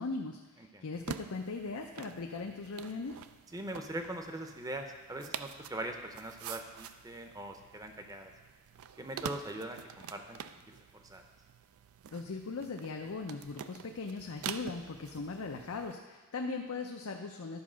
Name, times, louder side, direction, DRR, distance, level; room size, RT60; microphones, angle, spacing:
voice 1, 0.0-3.2 12.1-17.6, left 4 dB, 80° left, 2 dB, 0.6 m, -39 dB
sound 1, 0.9-15.9, right 8 dB, 75° right, 0.4 m, -47 dB
voice 2, 3.5-8.3 9.0-11.2, right 1 dB, 15° right, 5 dB, 0.7 m, -42 dB
11.5 x 4.7 x 6.2 m, 1.2 s
head